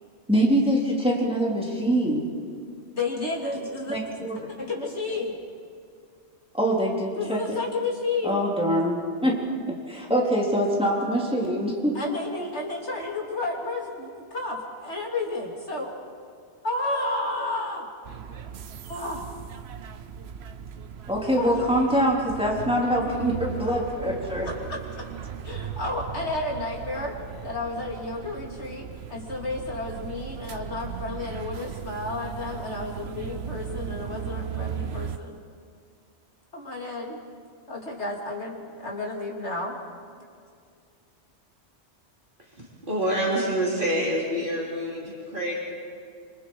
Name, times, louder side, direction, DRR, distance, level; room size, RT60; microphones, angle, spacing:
voice 1, 0.3-2.2 3.9-4.4 6.5-7.6 8.2-9.4 9.7-11.9 21.1-24.5, equal, 5° right, -3 dB, 3.4 m, -24 dB
voice 2, 2.9-4.0 4.5-5.4 7.2-8.4 11.9-15.9 16.6-17.9 18.9-19.3 21.4-21.8 24.4-25.1 25.4-27.2 27.4-35.4 36.5-37.2 37.7-39.8 40.2-40.3, left 2 dB, 75° left, 0 dB, 3.3 m, -32 dB
sound 1, 18.0-35.2, right 8 dB, 65° right, 1.0 m, -37 dB
voice 3, 42.6-45.5, right 1 dB, 45° right, -4 dB, 4.0 m, -27 dB
26.0 x 25.5 x 4.8 m, 2.2 s
omnidirectional pair, 1.2 m